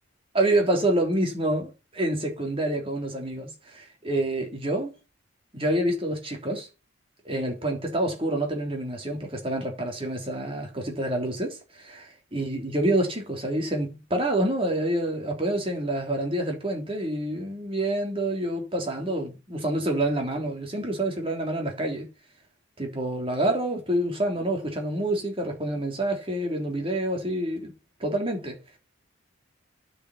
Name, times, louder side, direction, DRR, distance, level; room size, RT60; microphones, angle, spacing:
voice 1, 0.3-4.9 5.5-6.7 7.3-22.1 22.8-27.7 28.0-28.6, right 1 dB, 25° right, 3.5 m, -27 dB
9.6 x 5.8 x 8.4 m
head